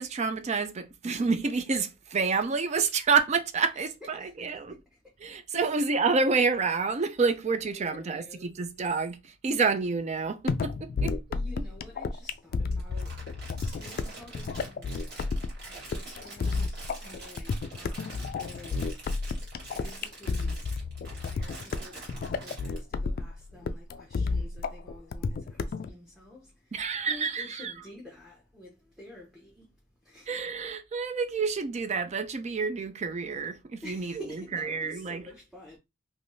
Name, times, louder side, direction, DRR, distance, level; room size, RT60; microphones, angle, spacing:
voice 1, 0.0-4.8 5.2-11.1 11.6-11.7 26.7-27.8 30.3-35.3, right 4 dB, 35° right, 0.4 m, -28 dB
voice 2, 4.0-5.7 7.7-8.6 11.0-13.2 13.5-15.2 15.6-19.2 19.7-30.4 33.8-35.8, left 1 dB, ahead, 0.7 m, -49 dB
sound 1, 10.5-25.9, left 4 dB, 50° left, 0.3 m, -32 dB
Crumpling crinkling, 12.7-22.8, right 2 dB, 55° right, 1.7 m, -46 dB
3.4 x 2.6 x 2.6 m
head